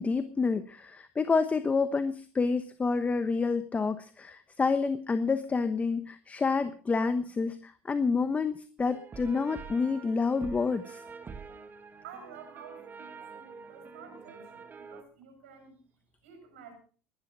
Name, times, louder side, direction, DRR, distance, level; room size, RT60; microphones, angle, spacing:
voice 1, 0.0-11.0, left 4 dB, 20° left, 11 dB, 1.1 m, -28 dB
sound 1, 8.8-15.0, right 5 dB, 30° right, 2.5 m, -46 dB
voice 2, 12.0-15.8 16.2-16.7, right 6 dB, 85° right, 4 dB, 7.1 m, -50 dB
21.0 x 11.0 x 4.1 m, 0.39 s
hypercardioid pair, 85°, 7 cm